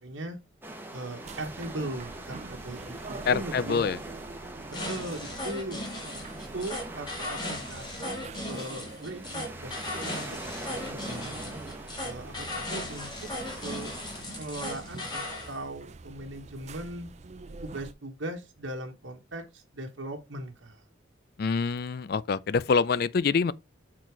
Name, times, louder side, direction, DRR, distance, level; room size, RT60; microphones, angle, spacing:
voice 1, 0.0-0.4 0.9-3.8 4.7-5.8 6.5-8.2 8.4-9.7 10.4-11.6 12.0-13.3 13.6-13.9 14.4-17.1 17.6-20.8, right 1 dB, 80° right, 1.2 m, -39 dB
sound 1, 0.6-14.2, right 1 dB, 10° right, 1.0 m, -44 dB
sound 2, 1.2-17.9, right 3 dB, 35° right, 0.4 m, -45 dB
voice 2, 3.3-4.0 21.4-23.5, left 5 dB, 50° left, 0.4 m, -25 dB
sound 3, 4.7-15.5, left 1 dB, 25° left, 2.1 m, -37 dB
6.6 x 4.1 x 4.5 m
head